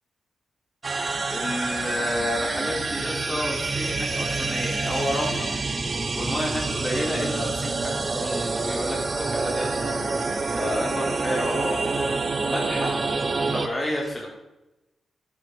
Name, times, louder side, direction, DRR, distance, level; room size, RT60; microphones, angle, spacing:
sound 1, 0.8-13.7, right 3 dB, 45° right, 1.2 m, -27 dB
voice 1, 1.3-5.5 6.1-10.0 10.5-12.2 12.4-13.0 13.3-14.3, left 1 dB, 20° left, -3 dB, 3.7 m, -30 dB
11.0 x 8.9 x 4.7 m, 0.99 s
cardioid pair, 60°, 0 cm